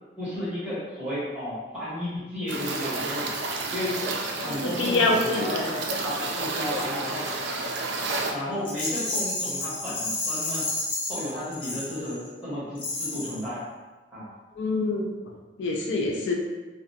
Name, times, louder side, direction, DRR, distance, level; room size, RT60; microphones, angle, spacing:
voice 1, 0.2-3.3 3.7-4.0 4.4-7.3 8.3-10.7 11.1-13.6 14.1-14.3, left 1 dB, 5° right, -11 dB, 1.0 m, -33 dB
sound 1, 2.5-8.3, right 3 dB, 75° right, 0.4 m, -31 dB
voice 2, 4.4-5.7 14.6-15.1 15.6-16.3, left 2 dB, 85° left, 1 dB, 0.4 m, -26 dB
Rattle, 8.6-12.3 12.8-13.5, left 2 dB, 30° left, 0.6 m, -31 dB
2.4 x 2.2 x 2.6 m, 1.2 s
head